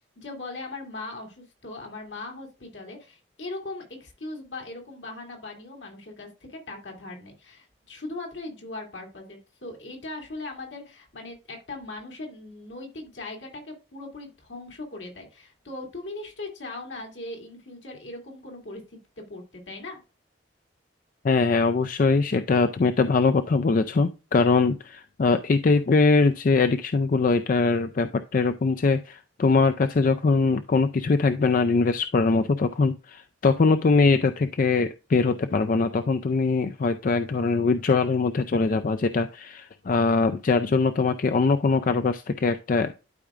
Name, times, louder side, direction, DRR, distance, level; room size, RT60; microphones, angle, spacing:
voice 1, 0.2-20.0, left 2 dB, 75° left, 1 dB, 2.6 m, -39 dB
voice 2, 21.2-43.1, left 4 dB, 45° left, 9 dB, 0.4 m, -22 dB
12.0 x 4.8 x 2.5 m, 0.30 s
head